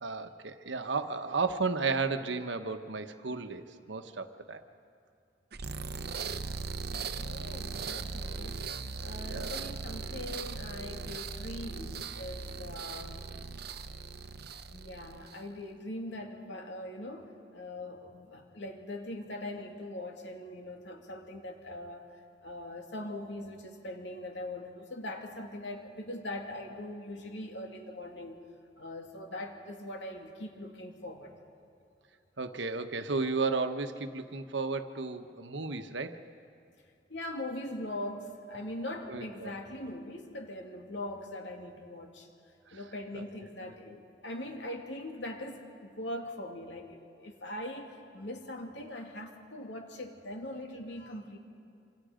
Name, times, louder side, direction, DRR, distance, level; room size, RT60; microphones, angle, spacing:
voice 1, 0.0-4.6 9.3-9.5 32.4-36.2 39.1-39.5 43.1-43.2, right 4 dB, 90° right, 8 dB, 1.2 m, -33 dB
sound 1, 5.5-15.5, right 4 dB, 60° right, 0.8 m, -39 dB
voice 2, 7.1-8.6 9.0-13.3 14.7-22.1 22.4-28.4 28.8-31.3 37.1-42.3 42.7-51.4, left 1 dB, 80° left, 2 dB, 2.7 m, -41 dB
27.0 x 26.5 x 5.2 m, 2.5 s
head